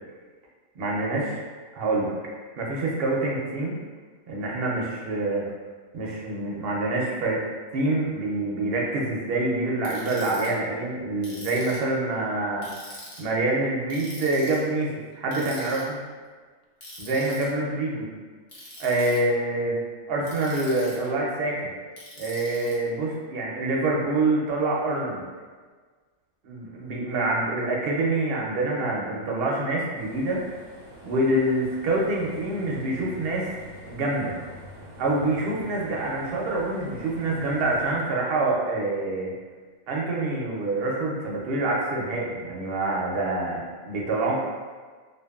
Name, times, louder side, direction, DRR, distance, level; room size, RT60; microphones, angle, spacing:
voice 1, 0.8-1.4 1.7-2.1 2.6-3.8 4.3-5.4 5.9-7.4 7.7-16.0 17.0-18.1 18.8-19.8 20.1-21.7 22.2-25.2 26.4-30.4 31.0-33.5 33.9-34.3 35.0-39.3 39.9-44.4, right 2 dB, 60° right, -3 dB, 0.7 m, -26 dB
Ratchet pawl, 9.8-10.5 11.2-11.9 12.6-13.2 13.9-14.6 15.3-15.8 16.8-17.4 18.5-19.2 20.2-21.1 22.0-22.7, left 1 dB, 40° left, 0.6 m, -43 dB
sound 1, 29.9-38.0, left 1 dB, 85° left, 1.2 m, -45 dB
2.5 x 2.5 x 2.3 m, 1.5 s
omnidirectional pair, 1.3 m